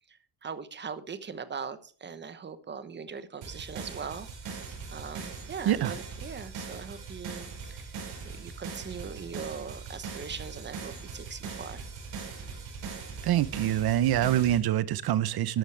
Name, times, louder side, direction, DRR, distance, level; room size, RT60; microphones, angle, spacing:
voice 1, 0.1-8.0 8.2-11.9, right 6 dB, 25° right, 12 dB, 1.1 m, -41 dB
sound 1, 3.4-14.6, right 5 dB, 85° right, 5.6 m, -40 dB
voice 2, 13.2-15.6, right 12 dB, 65° right, 16 dB, 0.9 m, -25 dB
12.5 x 11.5 x 3.4 m, 0.41 s
cardioid pair, 150°, 41 cm